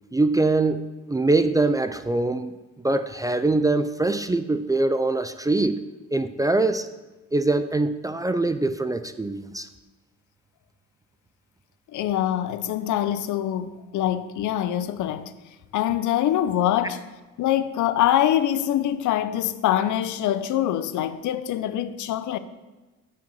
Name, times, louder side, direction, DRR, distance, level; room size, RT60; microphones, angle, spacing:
voice 1, 0.1-2.5 2.8-5.8 6.1-6.9 7.3-9.7, right 2 dB, 10° right, 0.3 m, -23 dB
voice 2, 11.9-15.3 15.7-17.0 17.4-22.4, left 11 dB, 75° left, 0.6 m, -24 dB
7.1 x 5.2 x 5.3 m
cardioid pair, 90°, 30 cm